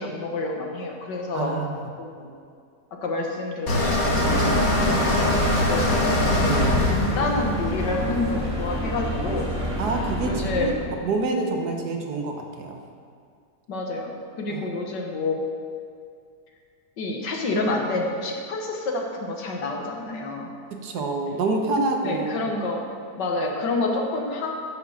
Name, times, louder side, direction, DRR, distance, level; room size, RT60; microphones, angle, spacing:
voice 1, 0.0-1.5 2.0-2.3 3.0-6.2 6.9-9.5 10.2-10.9 13.7-15.4 17.0-20.5 22.0-22.8 23.2-24.5, left 2 dB, 85° left, 1 dB, 2.0 m, -28 dB
voice 2, 1.3-1.9 6.4-6.9 9.8-10.7 11.0-12.8 14.5-14.6 20.7-22.6, right 3 dB, 70° right, 3 dB, 1.5 m, -27 dB
sound 1, 3.7-8.6, left 1 dB, 55° left, 1.9 m, -23 dB
sound 2, 4.2-10.9, equal, 5° right, 2.1 m, -28 dB
9.9 x 5.9 x 7.3 m, 2.3 s
omnidirectional pair, 1.8 m